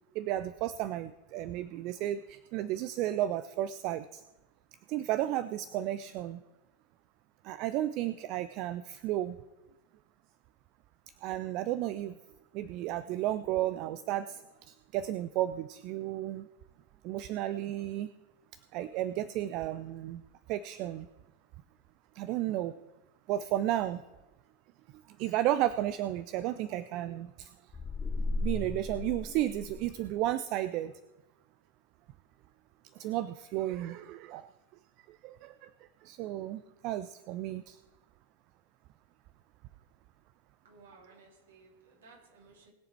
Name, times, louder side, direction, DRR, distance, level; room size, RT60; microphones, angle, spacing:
voice 1, 0.1-4.2 4.9-6.4 7.4-9.4 11.2-12.2 12.5-16.5 17.0-18.1 18.7-20.2 20.5-21.1 22.1-22.8 23.3-24.0 25.1-27.7 28.4-30.9 32.9-34.5 35.1-37.8, right 13 dB, 40° right, 14 dB, 0.4 m, -33 dB
sound 1, 27.7-30.1, left 2 dB, 20° left, 0.7 m, -35 dB
voice 2, 40.6-42.7, right 3 dB, 60° right, -1 dB, 3.3 m, -58 dB
20.0 x 7.2 x 4.5 m, 1.1 s
figure-of-eight pair, 90°, 0 cm